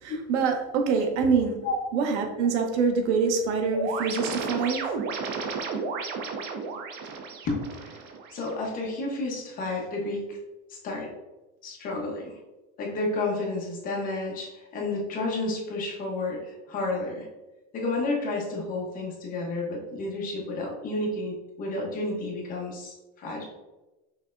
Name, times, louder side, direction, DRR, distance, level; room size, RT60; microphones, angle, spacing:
voice 1, 0.0-1.6 1.9-4.9, right 5 dB, 90° right, 4 dB, 0.9 m, -25 dB
sound 1, 3.7-8.7, right 4 dB, 35° right, 0.5 m, -33 dB
voice 2, 8.3-10.4 10.7-11.1 11.6-12.4 12.8-17.3 17.7-23.5, left 2 dB, 25° left, -2 dB, 0.9 m, -31 dB
5.9 x 3.3 x 2.5 m, 1.1 s
cardioid pair, 170°, 34 cm